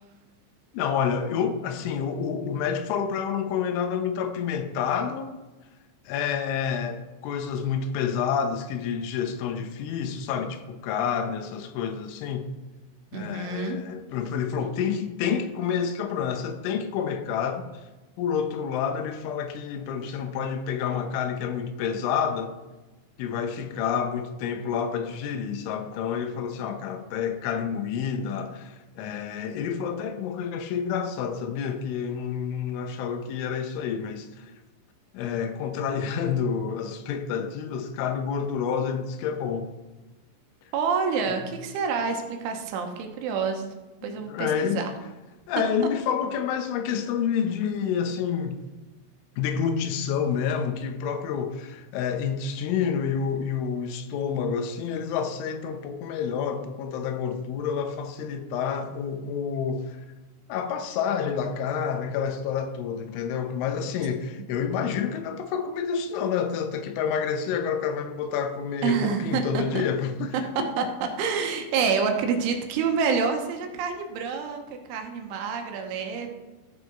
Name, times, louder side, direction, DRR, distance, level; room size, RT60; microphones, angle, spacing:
voice 1, 0.7-5.4 6.1-12.5 13.1-17.7 18.2-22.6 23.2-34.5 35.1-39.7 41.4-41.5 44.1-44.8 45.5-48.6 49.4-60.0 60.5-70.7, left 7 dB, 80° left, 3.2 m, -29 dB
voice 2, 13.1-13.8 40.7-43.7 44.0-44.9 64.4-64.5 68.8-69.8 70.8-70.9 71.2-76.4, right 5 dB, 85° right, 3.5 m, -27 dB
13.5 x 6.7 x 5.1 m
omnidirectional pair, 5.5 m